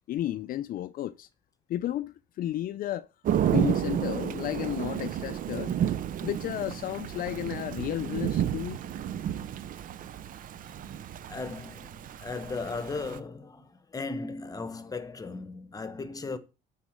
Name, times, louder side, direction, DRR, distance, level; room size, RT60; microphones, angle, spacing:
voice 1, 0.1-1.3 1.7-3.1 3.5-5.7 6.2-8.8, left 13 dB, 55° left, 0.4 m, -33 dB
Thunder / Rain, 3.2-13.2, right 9 dB, 55° right, 0.6 m, -31 dB
voice 2, 11.3-16.4, left 3 dB, 20° left, 1.0 m, -37 dB
9.4 x 4.0 x 6.5 m
cardioid pair, 110°, 17 cm